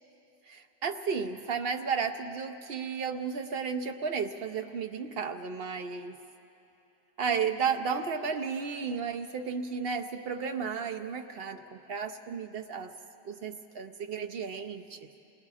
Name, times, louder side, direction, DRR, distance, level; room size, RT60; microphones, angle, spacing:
voice 1, 0.5-6.2 7.2-12.9 13.2-15.1, right 6 dB, 75° right, 7 dB, 0.5 m, -33 dB
28.5 x 19.5 x 4.8 m, 2.9 s
omnidirectional pair, 1.8 m